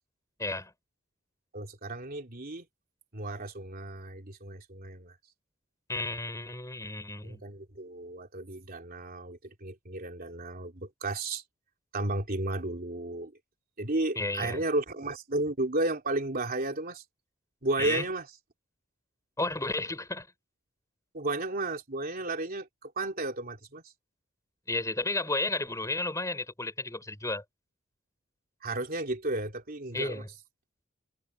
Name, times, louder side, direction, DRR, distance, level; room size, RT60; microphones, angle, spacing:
voice 1, 0.4-0.7 5.9-7.4 14.2-14.6 17.8-18.0 19.4-20.3 24.7-27.4 29.9-30.3, left 2 dB, 15° left, 6.0 m, -32 dB
voice 2, 1.5-2.6 3.1-5.1 7.2-11.4 11.9-13.3 13.8-17.0 17.6-18.3 21.1-23.8 28.6-30.2, right 2 dB, 45° right, 3.1 m, -33 dB
head